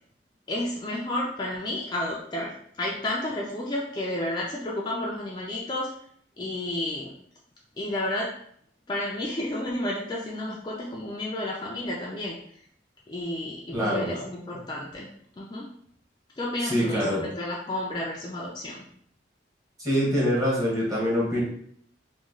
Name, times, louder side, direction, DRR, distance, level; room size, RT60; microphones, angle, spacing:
voice 1, 0.5-5.9 6.4-7.1 7.8-8.4 8.9-12.4 13.1-15.1 15.4-15.7 16.4-18.8, left 1 dB, 25° left, -4 dB, 0.4 m, -31 dB
voice 2, 13.7-14.1 16.6-17.3 19.8-21.4, equal, 20° right, -6 dB, 1.2 m, -24 dB
3.0 x 2.3 x 3.6 m, 0.64 s
head